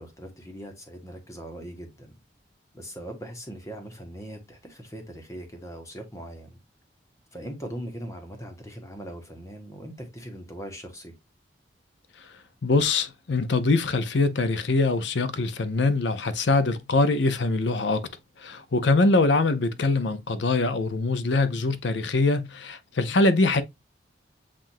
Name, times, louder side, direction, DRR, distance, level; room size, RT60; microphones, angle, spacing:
voice 1, 0.0-2.1 2.7-6.6 7.3-11.1, equal, 15° left, 1.0 m, -40 dB
voice 2, 12.6-18.0 18.4-23.6, left 3 dB, 70° left, 0.6 m, -23 dB
7.4 x 2.5 x 2.6 m
head